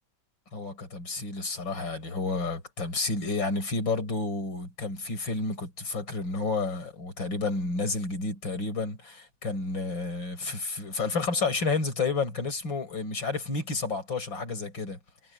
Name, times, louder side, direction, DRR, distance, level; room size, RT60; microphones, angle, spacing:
voice 1, 0.5-15.0, left 3 dB, 35° left, 6.8 m, -30 dB
omnidirectional pair, 3.6 m